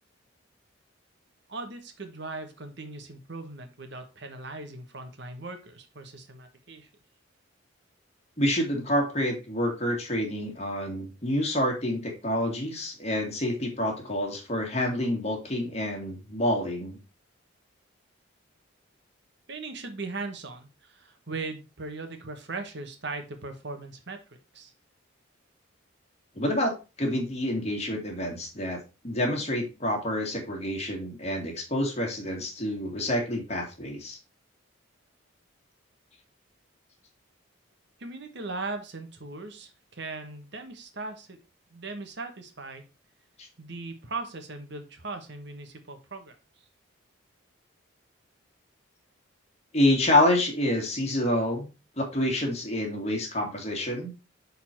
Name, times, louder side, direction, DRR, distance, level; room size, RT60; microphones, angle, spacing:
voice 1, 1.5-6.9 19.5-24.7 38.0-41.4 41.7-42.8 43.6-46.7, right 3 dB, 55° right, 7 dB, 1.2 m, -39 dB
voice 2, 8.4-17.0 26.4-26.7 27.0-28.8 29.0-34.2 43.4-43.5 49.7-51.7 52.0-54.1, left 1 dB, 30° left, 1 dB, 2.0 m, -27 dB
6.7 x 4.0 x 4.4 m, 0.29 s
head